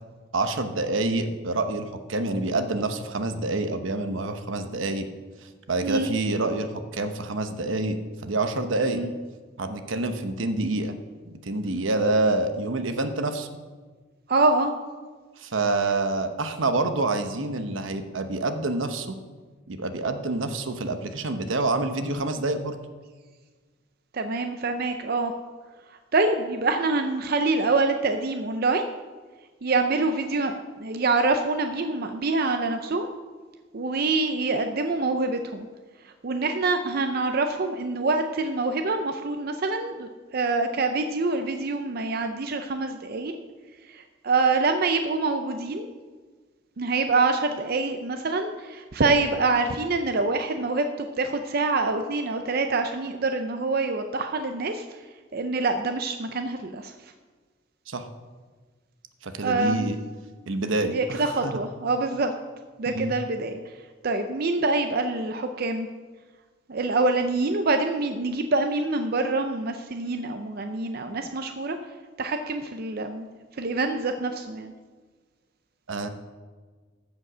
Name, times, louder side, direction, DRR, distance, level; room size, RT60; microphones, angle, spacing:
voice 1, 0.3-5.1 5.4-9.0 9.6-10.9 11.4-13.5 15.4-19.2 19.7-22.8 57.9-58.1 59.2-60.0 60.5-61.6 62.9-63.1 75.9-76.1, right 2 dB, 75° right, 8 dB, 0.9 m, -27 dB
voice 2, 14.3-14.8 24.1-25.3 26.1-28.8 29.6-33.1 33.7-35.7 36.0-43.3 43.9-45.9 46.8-55.0 55.3-56.9 59.4-59.9 60.9-62.3 62.8-63.6 64.0-65.9 66.7-71.8 72.2-73.3 73.6-74.7, right 3 dB, 50° right, 6 dB, 0.5 m, -25 dB
14.5 x 5.3 x 6.1 m, 1.4 s
head